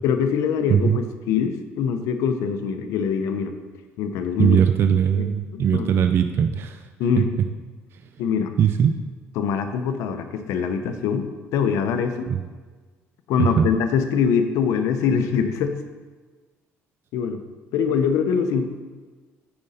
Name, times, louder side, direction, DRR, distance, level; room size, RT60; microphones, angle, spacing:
voice 1, 0.0-3.5 4.0-4.6 5.5-6.1 7.0-7.3 8.2-8.5 9.4-12.3 13.3-15.8 17.1-17.4 17.7-18.7, left 6 dB, 80° left, 7 dB, 0.8 m, -23 dB
voice 2, 4.4-6.8 7.2-7.3 8.6-9.0 12.3-12.4 13.4-13.7, right 8 dB, 50° right, 8 dB, 0.4 m, -20 dB
8.8 x 5.3 x 4.2 m, 1.4 s
cardioid pair, 120°, 5 cm